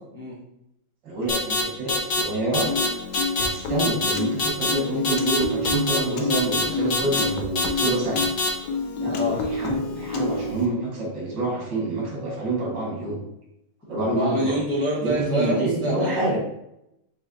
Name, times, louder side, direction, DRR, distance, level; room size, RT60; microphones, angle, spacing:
voice 1, 1.0-2.7 3.3-8.3 9.0-13.2 13.9-14.6 15.0-16.4, right 2 dB, 80° right, -4 dB, 2.3 m, -27 dB
sound 1, 1.3-1.6 1.9-2.2 2.5-2.9 3.1-3.5 3.8-4.1 4.4-4.7 5.0-5.4 5.6-6.0 6.3-6.6 6.9-7.2 7.6-7.9 8.2-8.5, left 3 dB, 50° left, 1.3 m, -24 dB
Piano, 2.7-10.7, left 4 dB, 80° left, 1.3 m, -29 dB
voice 2, 9.1-9.4 14.0-16.4, equal, 10° left, -6 dB, 0.7 m, -26 dB
6.2 x 3.0 x 2.6 m, 0.83 s
omnidirectional pair, 1.9 m